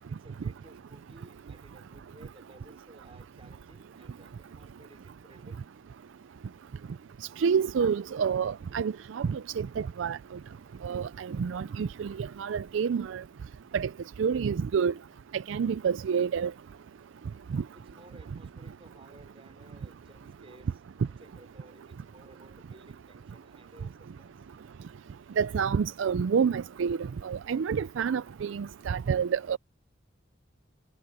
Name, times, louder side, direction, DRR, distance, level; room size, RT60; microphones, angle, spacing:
voice 1, 0.0-5.6 17.7-20.8 21.1-24.4, right 1 dB, 30° right, 4.6 m, -56 dB
voice 2, 7.4-10.2 10.8-13.2 13.7-13.9 14.2-14.9 15.3-16.5 17.5-17.6 25.4-27.0 27.2-29.6, right 6 dB, 75° right, 0.4 m, -28 dB
head